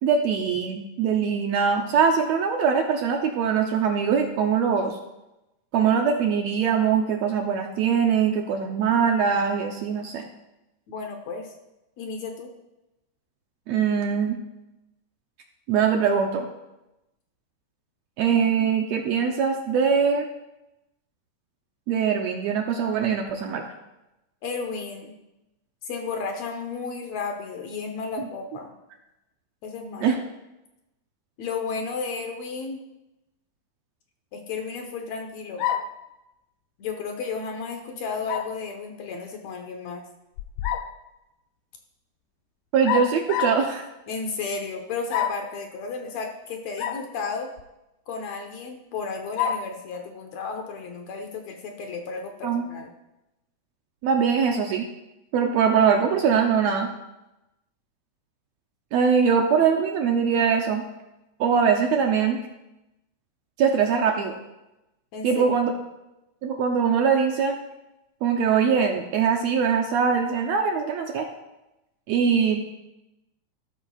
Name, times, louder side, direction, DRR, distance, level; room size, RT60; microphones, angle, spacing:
voice 1, 0.0-5.0 5.7-10.3 13.7-14.4 15.7-16.5 18.2-20.3 21.9-23.7 30.0-30.2 42.7-43.9 52.4-52.7 54.0-54.8 55.3-56.9 58.9-60.8 61.4-62.4 63.6-64.3 65.2-65.7 66.4-67.6 68.2-71.3 72.1-72.6, right 6 dB, 70° right, 3 dB, 1.7 m, -22 dB
voice 2, 10.9-11.5 12.0-12.5 24.4-25.2 25.8-28.7 29.6-30.1 31.4-32.8 34.3-35.6 36.8-40.1 44.1-47.5 48.1-52.9 65.1-65.6, left 4 dB, 65° left, 3 dB, 2.1 m, -33 dB
sound 1, 35.6-36.0 38.3-38.6 40.4-41.0 42.8-43.7 45.1-45.5 46.8-47.1 47.6-47.7 49.4-49.7, left 9 dB, 80° left, 2.0 m, -27 dB
13.0 x 12.5 x 2.4 m, 0.95 s
omnidirectional pair, 3.6 m